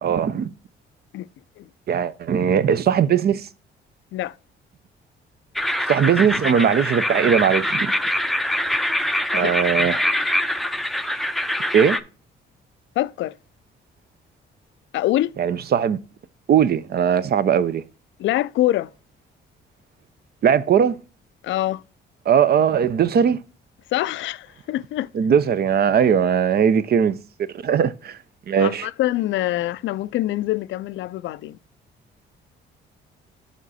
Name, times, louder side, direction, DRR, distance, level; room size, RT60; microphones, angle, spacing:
voice 1, 0.0-0.5 1.9-3.5 5.9-7.9 9.3-10.1 11.7-12.0 15.4-16.0 16.5-17.8 20.4-21.0 22.3-23.4 25.1-27.2 27.6-28.2 28.5-28.9, right 8 dB, 50° right, 0.6 m, -19 dB
sound 1, 5.6-12.0, left 1 dB, ahead, 0.5 m, -24 dB
voice 2, 13.0-13.4 14.9-15.3 18.2-18.9 21.4-21.8 23.9-25.1 28.6-31.6, left 14 dB, 75° left, 0.4 m, -24 dB
7.2 x 5.0 x 4.1 m
cardioid pair, 90°, 20 cm